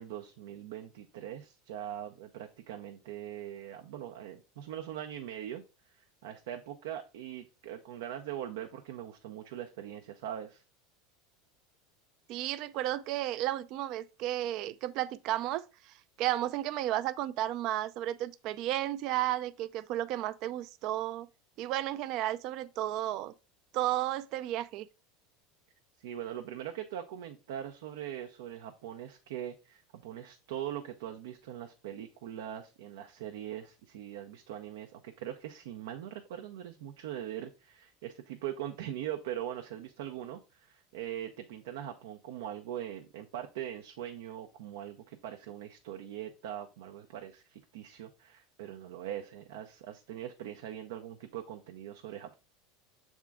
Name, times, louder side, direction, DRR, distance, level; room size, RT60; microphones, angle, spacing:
voice 1, 0.0-5.6 6.0-10.6 26.0-52.3, right 11 dB, 80° right, 0.7 m, -41 dB
voice 2, 12.3-21.3 21.6-23.3 23.7-24.9, right 14 dB, 50° right, 0.4 m, -33 dB
7.4 x 3.6 x 3.5 m
supercardioid pair, 150°, 0 cm